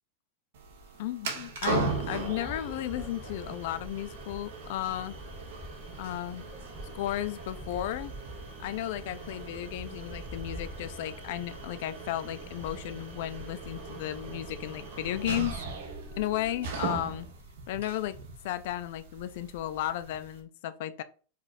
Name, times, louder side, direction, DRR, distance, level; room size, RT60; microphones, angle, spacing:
sound 1, 0.5-20.4, right 4 dB, 75° right, 1.1 m, -39 dB
voice 1, 1.0-5.1 6.0-6.4 6.9-8.1 8.6-15.6 16.1-17.3 17.7-18.2 18.4-21.0, left 13 dB, 55° left, 0.4 m, -34 dB
sound 2, 1.8-15.6, left 1 dB, ahead, 0.9 m, -46 dB
4.9 x 2.4 x 4.2 m
supercardioid pair, 175°, 0 cm